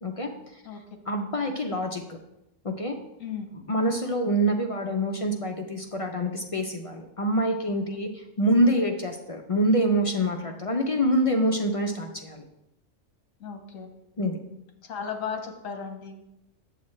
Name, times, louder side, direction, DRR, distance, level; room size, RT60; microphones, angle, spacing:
voice 1, 0.0-0.6 1.1-2.2 2.6-3.0 3.7-12.5 14.2-14.4, equal, 50° left, 3 dB, 0.4 m, -26 dB
voice 2, 13.4-13.9 14.8-16.4, left 6 dB, 85° left, 6 dB, 1.4 m, -35 dB
7.9 x 7.0 x 3.2 m, 0.88 s
omnidirectional pair, 1.3 m